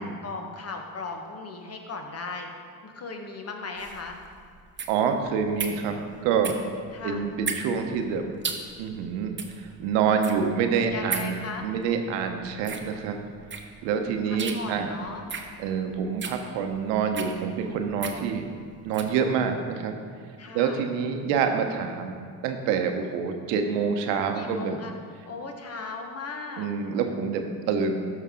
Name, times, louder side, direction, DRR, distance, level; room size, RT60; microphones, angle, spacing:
voice 1, 0.0-2.5 2.8-4.2 6.9-7.3 10.9-11.7 14.2-15.2 20.4-20.8 24.3-24.9 25.2-26.7, left 3 dB, 35° left, 3 dB, 1.4 m, -37 dB
sound 1, 3.8-19.2, right 5 dB, 25° right, 1.1 m, -37 dB
voice 2, 4.9-6.6 7.0-8.3 8.8-11.3 11.6-13.2 13.8-14.9 15.6-18.5 18.8-19.9 20.5-24.8 26.6-28.0, right 6 dB, 70° right, 5 dB, 1.0 m, -27 dB
13.0 x 5.7 x 3.8 m, 2.1 s
hypercardioid pair, 60°, 44 cm